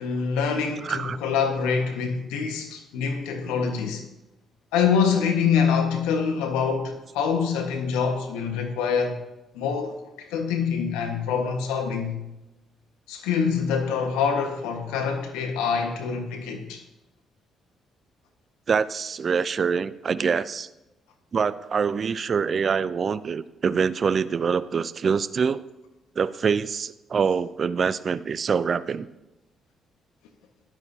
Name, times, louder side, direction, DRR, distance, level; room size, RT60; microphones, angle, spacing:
voice 1, 0.0-4.0 4.7-9.2 9.5-12.2 13.1-16.8, left 6 dB, 90° left, 1.6 m, -25 dB
voice 2, 0.8-1.2 18.7-20.7 21.3-25.6 26.2-29.1, right 6 dB, 50° right, 0.6 m, -25 dB
16.0 x 12.5 x 2.9 m
supercardioid pair, 60°, 0 cm